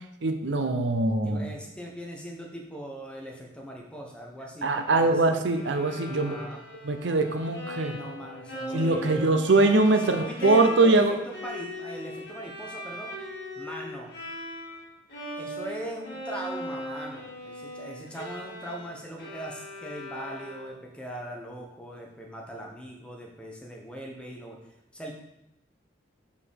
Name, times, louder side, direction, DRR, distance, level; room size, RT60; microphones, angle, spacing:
voice 1, 0.2-1.5 4.6-6.4 6.8-8.0 8.7-11.2, right 2 dB, 75° right, 7 dB, 0.7 m, -22 dB
voice 2, 1.2-5.4 6.0-6.6 7.9-9.3 10.0-11.2 11.4-13.1 13.6-14.1 15.4-24.6 24.9-25.2, equal, 5° left, -1 dB, 1.0 m, -40 dB
Bowed string instrument, 5.5-14.8 15.1-20.9, left 1 dB, 55° left, 2.2 m, -39 dB
5.5 x 4.8 x 6.4 m, 0.85 s
head